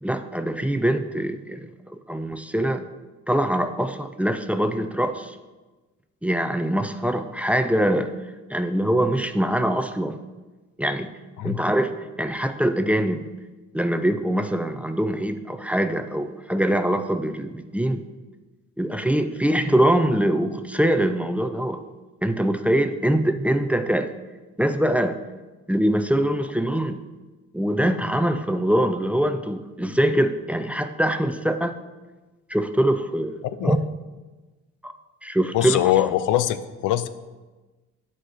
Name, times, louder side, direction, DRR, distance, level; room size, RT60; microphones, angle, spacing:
voice 1, 0.0-2.8 3.3-5.4 6.2-8.1 8.5-10.2 10.8-11.1 11.4-13.2 13.7-18.0 18.8-21.8 22.2-24.1 24.6-25.2 25.7-27.0 27.5-31.8 32.5-33.8 34.8-34.9 35.2-35.9, right 1 dB, 5° right, 9 dB, 0.4 m, -23 dB
voice 2, 35.5-37.1, left 12 dB, 90° left, 13 dB, 0.5 m, -22 dB
8.9 x 4.4 x 6.4 m, 1.2 s
cardioid pair, 90°, 30 cm